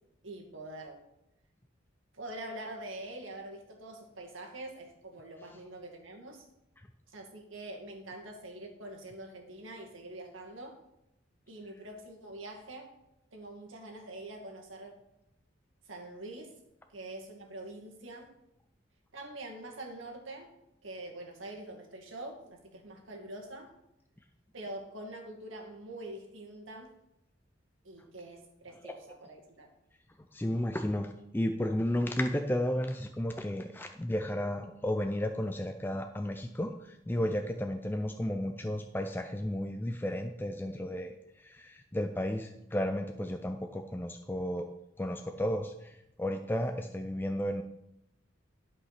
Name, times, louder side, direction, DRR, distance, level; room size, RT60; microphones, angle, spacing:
voice 1, 0.2-1.0 2.1-6.4 7.1-10.8 11.5-12.9 13.3-15.0 15.9-16.5 16.9-18.3 19.1-20.5 20.8-23.7 24.5-26.9 27.8-29.7, right 1 dB, 85° right, 1 dB, 2.1 m, -45 dB
voice 2, 30.3-44.7 45.0-47.6, left 1 dB, 10° left, 5 dB, 0.4 m, -33 dB
11.5 x 5.4 x 5.8 m, 0.87 s
head